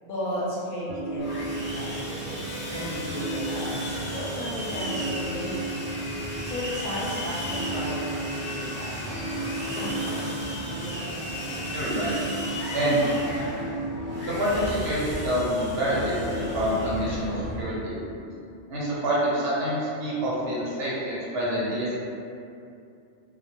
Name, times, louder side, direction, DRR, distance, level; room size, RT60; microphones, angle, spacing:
voice 1, 0.0-5.9 6.4-10.2, equal, 45° left, -8 dB, 0.7 m, -35 dB
sound 1, 0.9-18.3, right 2 dB, 90° right, 1.0 m, -36 dB
Sawing, 1.2-17.6, equal, 15° right, 0.5 m, -34 dB
voice 2, 11.7-12.2 12.7-13.0 14.3-17.9 18.7-21.9, right 1 dB, 60° right, -8 dB, 0.9 m, -27 dB
2.2 x 2.1 x 2.9 m, 2.6 s
omnidirectional pair, 1.3 m